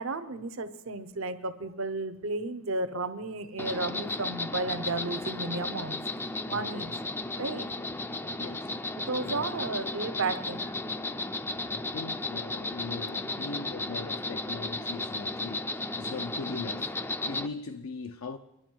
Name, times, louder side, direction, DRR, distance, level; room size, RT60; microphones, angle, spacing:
voice 1, 0.0-6.0 6.5-6.9 7.4-7.7 9.0-10.7, right 3 dB, 60° right, 0.8 m, -33 dB
Insect, 3.6-17.5, left 2 dB, 10° left, 0.4 m, -34 dB
voice 2, 8.4-8.7 9.2-9.4 11.7-18.4, left 4 dB, 70° left, 0.5 m, -40 dB
24.0 x 11.0 x 4.6 m
head